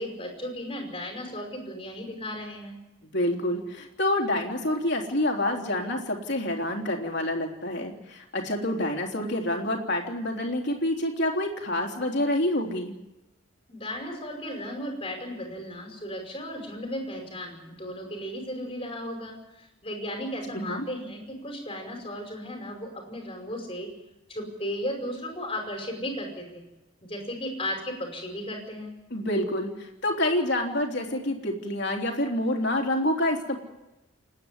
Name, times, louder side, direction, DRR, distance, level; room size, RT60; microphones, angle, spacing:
voice 1, 0.0-2.8 13.7-23.9 24.3-26.6 27.0-28.9, equal, 25° left, 3 dB, 5.4 m, -35 dB
voice 2, 3.0-12.9 20.5-20.9 29.1-33.6, left 1 dB, 55° left, 2 dB, 3.4 m, -27 dB
29.0 x 9.8 x 9.9 m, 1.0 s
head